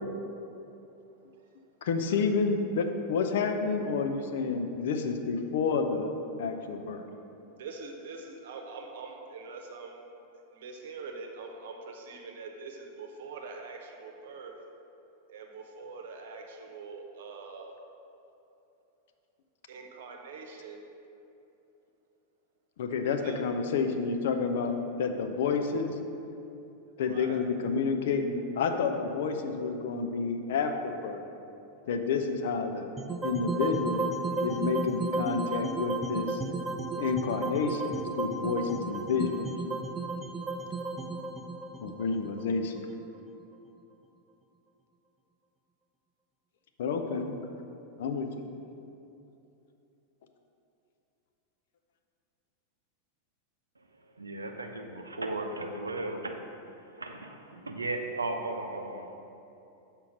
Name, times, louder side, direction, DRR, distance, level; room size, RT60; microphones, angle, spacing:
voice 1, 1.8-6.1 6.4-7.0 22.8-25.9 27.0-31.2 31.9-32.9 33.2-34.1 34.4-36.4 37.0-39.5 41.8-42.9 46.8-47.4 48.0-48.3, left 5 dB, 55° left, 6 dB, 0.5 m, -29 dB
voice 2, 7.6-10.0 10.5-14.5 15.3-17.8 19.7-20.8 23.2-23.4 27.0-27.4, right 4 dB, 55° right, 2 dB, 0.9 m, -44 dB
sound 1, 33.0-43.2, right 3 dB, 15° right, 0.4 m, -34 dB
voice 3, 54.2-56.4 57.0-59.1, right 2 dB, 80° right, 4 dB, 0.6 m, -35 dB
7.0 x 4.5 x 5.1 m, 2.8 s
figure-of-eight pair, 90°, 0 cm